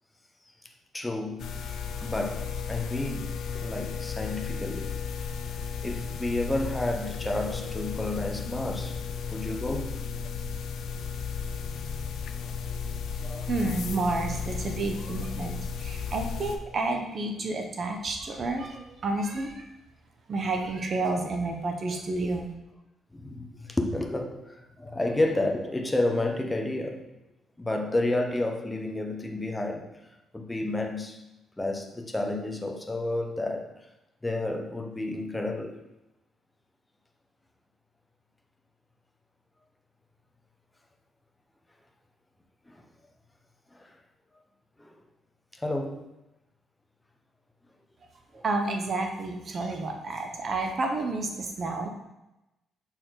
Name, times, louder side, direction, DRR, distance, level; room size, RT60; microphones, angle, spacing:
voice 1, 0.9-1.6 2.0-5.0 5.8-9.0 9.3-9.9 13.2-13.5 13.8-14.0 23.1-27.1 27.6-29.8 30.3-31.2 31.6-33.7 34.2-35.8 42.7-42.8 43.7-43.9 44.8-44.9 45.6-46.0 48.3-48.4, left 2 dB, 15° left, 1.0 m, -31 dB
sound 1, 1.4-16.6, left 6 dB, 75° left, 0.5 m, -34 dB
voice 2, 13.5-19.6 20.3-22.5 48.4-51.9, right 2 dB, 50° right, 1.0 m, -30 dB
6.3 x 4.4 x 3.9 m
cardioid pair, 90°, 0 cm